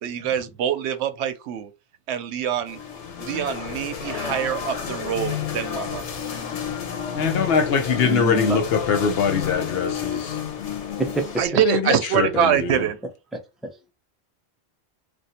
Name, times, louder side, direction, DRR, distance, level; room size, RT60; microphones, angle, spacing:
voice 1, 0.0-1.7 2.1-2.8 3.2-6.0 11.4-13.0, right 9 dB, 75° right, 0.8 m, -24 dB
sound 1, 2.7-11.5, left 8 dB, 90° left, 1.1 m, -31 dB
voice 2, 7.1-10.4 11.6-12.9, left 6 dB, 65° left, 0.8 m, -23 dB
voice 3, 8.0-8.6 11.0-11.3 13.3-13.9, right 2 dB, ahead, 0.3 m, -27 dB
2.5 x 2.5 x 4.1 m
omnidirectional pair, 1.2 m